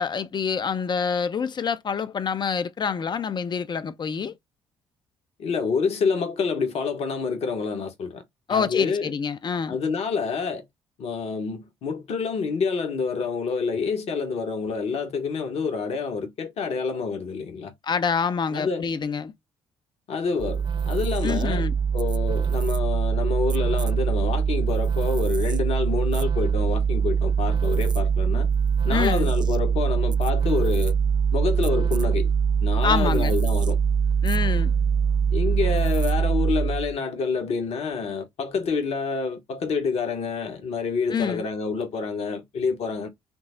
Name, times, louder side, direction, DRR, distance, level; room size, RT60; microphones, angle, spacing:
voice 1, 0.0-4.3 8.5-9.8 17.8-19.3 21.2-21.7 28.3-28.4 28.9-29.3 32.8-33.3 34.2-34.7 41.1-41.4, left 6 dB, 40° left, 0.6 m, -26 dB
voice 2, 5.4-8.2 8.5-9.1 9.5-10.6 11.0-17.7 18.5-18.9 20.1-21.7 21.9-28.5 28.8-31.0 31.3-32.3 32.6-33.8 35.3-43.1, left 5 dB, 60° left, 1.2 m, -27 dB
sound 1, 20.4-37.0, right 7 dB, 35° right, 0.4 m, -23 dB
5.9 x 2.0 x 3.8 m
hypercardioid pair, 50°, 12 cm